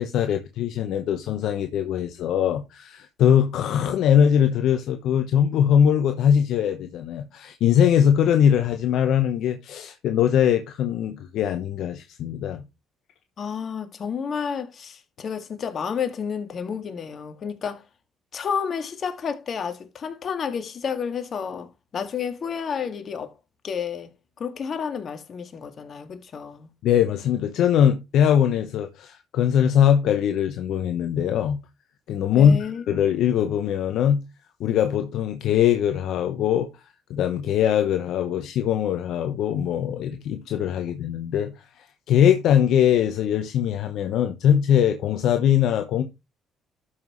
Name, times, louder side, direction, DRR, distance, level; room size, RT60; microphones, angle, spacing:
voice 1, 0.0-12.6 26.8-31.6 32.1-34.2 34.6-36.7 37.1-41.5 41.8-46.0, left 9 dB, 75° left, 0.9 m, -21 dB
voice 2, 13.4-17.8 18.3-23.3 23.6-24.1 24.4-26.7 32.3-32.8, left 7 dB, 55° left, 1.9 m, -30 dB
12.5 x 5.7 x 3.1 m
supercardioid pair, 65°, 0 cm